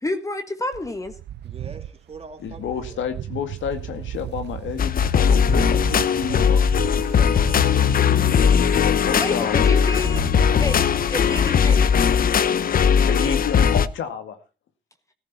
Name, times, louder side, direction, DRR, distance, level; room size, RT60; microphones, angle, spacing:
voice 1, 0.0-1.2 9.1-10.3 10.5-11.9, left 2 dB, 15° left, 1.6 m, -29 dB
sound 1, 0.7-10.5, right 11 dB, 60° right, 0.6 m, -35 dB
voice 2, 1.4-3.0 5.6-6.5 6.9-7.7 13.2-13.3, right 4 dB, 30° right, 3.0 m, -43 dB
voice 3, 2.4-5.8 6.2-6.7 8.3-9.7 13.1-14.4, left 7 dB, 75° left, 2.1 m, -30 dB
sound 2, 4.8-13.9, left 7 dB, 45° left, 0.8 m, -19 dB
14.5 x 14.0 x 4.2 m
cardioid pair, 90°, 20 cm